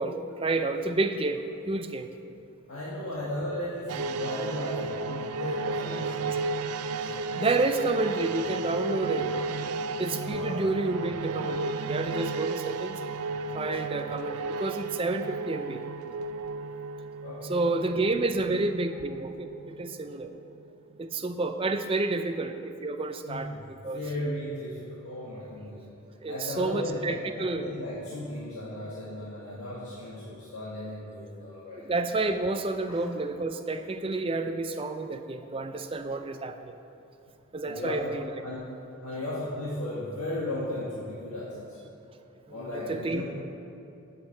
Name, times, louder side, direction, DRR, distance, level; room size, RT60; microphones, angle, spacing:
voice 1, 0.0-2.1 7.4-9.4 9.7-13.0 13.5-15.8 17.5-20.3 21.0-24.0 26.2-27.7 31.8-36.7 37.5-38.2 42.7-43.2, right 3 dB, 25° right, 7 dB, 0.4 m, -30 dB
voice 2, 2.7-6.3 10.2-10.6 17.2-17.8 23.2-25.8 26.3-31.9 32.9-33.0 37.7-38.1 38.4-38.6 39.0-41.8 42.5-43.2, left 1 dB, 90° left, -8 dB, 1.9 m, -35 dB
sound 1, 3.9-20.6 20.9-21.0, right 3 dB, 90° right, 0.4 m, -33 dB
7.6 x 7.3 x 7.8 m, 2.8 s
head